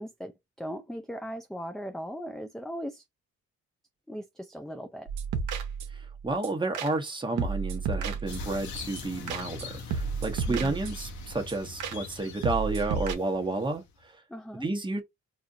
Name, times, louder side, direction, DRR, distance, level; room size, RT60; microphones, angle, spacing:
voice 1, 0.0-3.0 4.1-5.1 10.5-10.8 14.3-14.7, equal, ahead, 0.3 m, -38 dB
sound 1, 5.1-6.1 6.4-6.5 6.7-7.1 7.4-8.6 9.0-9.1 9.3-9.6 9.9-11.1 11.5-11.6 11.8-12.2 12.4-13.1, right 6 dB, 80° right, 0.8 m, -32 dB
voice 2, 5.9-14.2 14.6-15.0, right 2 dB, 15° right, 1.0 m, -31 dB
sound 2, 8.3-14.0, left 4 dB, 70° left, 0.9 m, -42 dB
4.2 x 2.5 x 2.5 m
cardioid pair, 90°, 30 cm